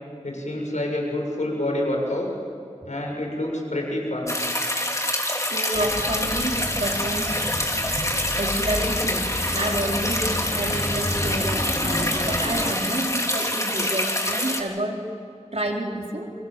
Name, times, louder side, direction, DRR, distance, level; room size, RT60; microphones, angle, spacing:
voice 1, 0.2-2.3 2.9-4.3, left 1 dB, 85° left, 0 dB, 7.0 m, -27 dB
sound 1, 4.3-14.6, left 1 dB, 25° left, 3.5 m, -26 dB
voice 2, 5.5-7.5 7.9-8.1 8.4-15.0 15.5-16.3, right 1 dB, 65° right, 0 dB, 4.2 m, -29 dB
sound 2, 5.7-12.7, left 1 dB, 45° left, 3.9 m, -31 dB
30.0 x 25.0 x 7.6 m, 2.5 s
wide cardioid pair, 40°, 12 cm